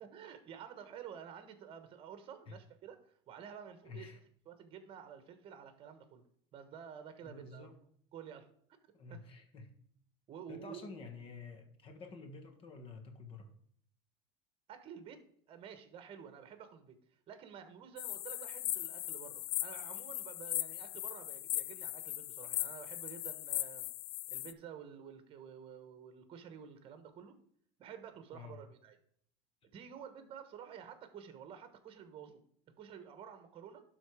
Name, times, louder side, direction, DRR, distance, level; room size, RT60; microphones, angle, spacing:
voice 1, 0.0-4.1 4.4-6.2 6.5-7.7 8.1-8.5 8.8-9.2 10.3-10.9 14.7-15.2 15.5-17.0 17.3-23.9 24.3-27.3 27.8-29.0 29.7-32.4 32.8-33.8, right 8 dB, 40° right, 9 dB, 1.2 m, -51 dB
voice 2, 3.8-4.2 7.2-7.8 8.9-9.8 10.5-13.5 28.3-28.6, left 4 dB, 40° left, 6 dB, 1.6 m, -50 dB
sound 1, 18.0-24.5, left 17 dB, 75° left, 0.4 m, -39 dB
11.5 x 4.0 x 4.9 m, 0.64 s
supercardioid pair, 120°, 15 cm